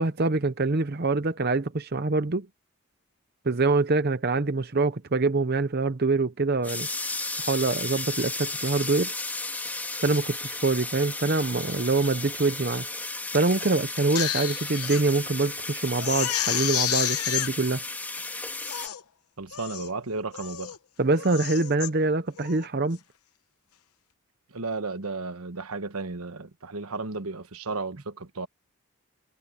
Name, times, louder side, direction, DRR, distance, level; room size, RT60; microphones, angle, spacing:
voice 1, 0.0-2.5 3.4-6.9 7.4-9.1 10.0-12.8 13.3-17.8 21.0-23.0, right 3 dB, 45° right, 0.8 m, -25 dB
sound 1, 6.6-18.9, left 2 dB, 10° left, 2.6 m, -34 dB
Crying sobbing, 14.0-15.0 15.5-15.6 16.0-17.5 18.2-18.3 18.6-19.0 19.5-19.9 20.3-20.8 21.1-21.9 22.4-22.7, left 12 dB, 85° left, 1.0 m, -30 dB
voice 2, 19.4-20.8 24.5-28.5, right 3 dB, 80° right, 1.2 m, -34 dB
head